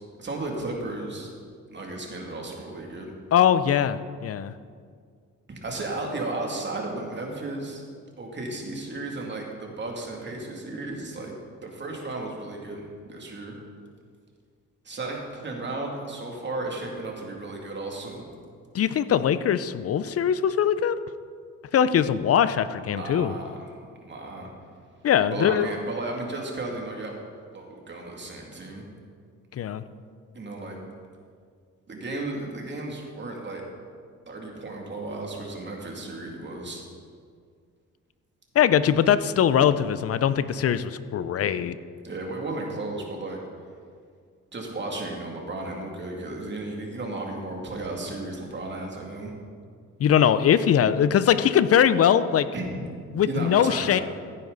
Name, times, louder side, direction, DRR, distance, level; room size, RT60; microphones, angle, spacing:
voice 1, 0.2-1.3 1.7-3.1 5.5-7.8 8.2-11.3 11.6-13.5 14.8-18.3 22.8-23.7 24.0-24.5 25.3-27.2 27.5-28.8 30.3-30.8 31.9-33.6 34.3-36.8 42.0-43.4 44.5-49.3 52.5-54.0, right 2 dB, 35° right, 0 dB, 2.6 m, -34 dB
voice 2, 3.3-4.5 18.7-20.9 21.7-23.3 25.0-25.7 29.5-29.8 38.5-41.8 50.0-52.5 53.1-54.0, left 9 dB, 50° left, 14 dB, 0.6 m, -21 dB
16.0 x 9.4 x 4.0 m, 2.1 s
cardioid pair, 90°, 30 cm